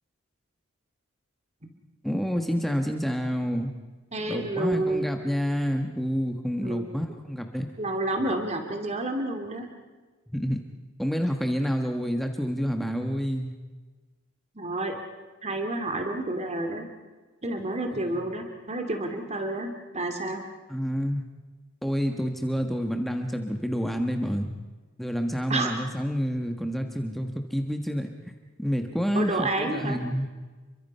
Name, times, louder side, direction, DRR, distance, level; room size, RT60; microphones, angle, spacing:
voice 1, 2.0-3.7 4.2-7.7 10.3-10.6 11.0-13.5 17.9-18.2 20.7-21.2 21.8-24.5 25.0-28.3 28.6-30.3, equal, ahead, 4 dB, 1.4 m, -28 dB
voice 2, 4.1-5.1 6.6-6.9 7.8-9.7 14.5-14.9 15.4-16.8 17.4-20.4 25.5-25.7 29.1-30.0, right 2 dB, 35° right, 4 dB, 2.6 m, -29 dB
30.0 x 23.5 x 5.6 m, 1.3 s
head